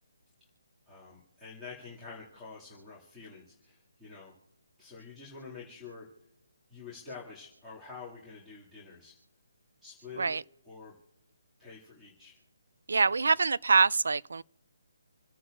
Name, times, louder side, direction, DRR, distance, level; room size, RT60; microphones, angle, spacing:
voice 1, 0.9-4.3 4.8-6.1 6.7-9.1 9.8-10.3 10.6-10.9 11.6-12.4 13.1-13.3, left 4 dB, 5° right, 2.4 m, -47 dB
voice 2, 12.9-14.4, right 4 dB, 75° right, 0.3 m, -25 dB
28.5 x 9.9 x 2.6 m
hypercardioid pair, 170°, 0 cm